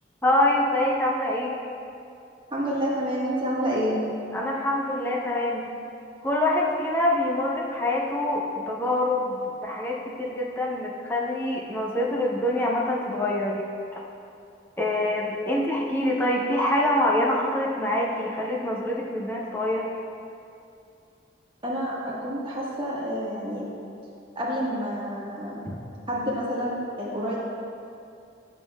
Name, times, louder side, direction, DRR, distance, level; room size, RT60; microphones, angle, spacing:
voice 1, 0.2-1.6 4.3-5.7 6.2-13.6 13.9-14.0 14.8-19.9 25.7-25.8, left 1 dB, 10° left, -3 dB, 0.8 m, -25 dB
voice 2, 2.5-4.0 21.6-23.6 24.3-25.6 26.1-27.4, equal, 25° right, -6 dB, 1.5 m, -28 dB
11.0 x 7.2 x 2.4 m, 2.6 s
head